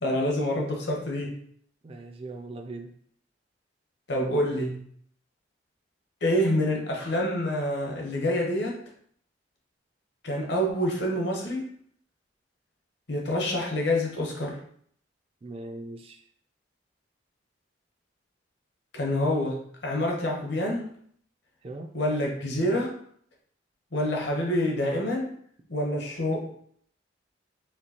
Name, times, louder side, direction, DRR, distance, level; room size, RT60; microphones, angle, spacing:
voice 1, 0.0-1.4 4.1-4.8 6.2-8.8 10.2-11.7 13.1-14.6 18.9-20.9 21.9-22.9 23.9-25.3 25.7-26.5, left 1 dB, 65° left, -1 dB, 0.9 m, -27 dB
voice 2, 1.8-2.9 15.4-16.2 21.6-21.9, right 2 dB, 30° right, 4 dB, 0.3 m, -40 dB
4.4 x 2.7 x 2.8 m, 0.63 s
head